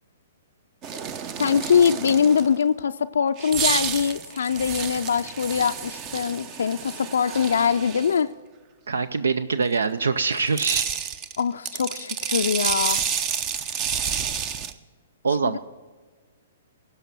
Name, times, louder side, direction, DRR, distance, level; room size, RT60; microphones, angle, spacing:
sound 1, 0.8-2.6 3.4-8.2 10.3-14.7, right 7 dB, 30° right, 0.7 m, -29 dB
voice 1, 1.4-8.3 11.4-13.0 15.4-15.5, left 7 dB, 75° left, 7 dB, 0.4 m, -23 dB
voice 2, 8.9-10.9 15.2-15.6, right 4 dB, 80° right, 14 dB, 0.5 m, -24 dB
16.0 x 5.7 x 6.8 m, 1.4 s
hypercardioid pair, 130°, 0 cm